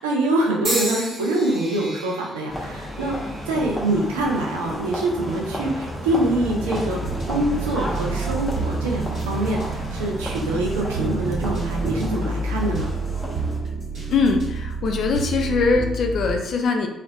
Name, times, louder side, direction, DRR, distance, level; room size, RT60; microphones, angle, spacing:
voice 1, 0.0-3.2 3.5-7.0 7.3-12.9, right 1 dB, 80° right, -1 dB, 0.4 m, -24 dB
sound 1, 0.6-4.8 5.5-5.9 6.9-7.1, right 1 dB, 30° right, 0.9 m, -33 dB
sound 2, 2.5-13.6, equal, 10° left, 0.7 m, -32 dB
sound 3, 6.2-16.4, right 3 dB, 55° right, 0.9 m, -29 dB
voice 2, 14.1-16.9, left 4 dB, 55° left, 4 dB, 0.3 m, -22 dB
2.4 x 2.0 x 2.6 m, 0.89 s
figure-of-eight pair, 40°, 0 cm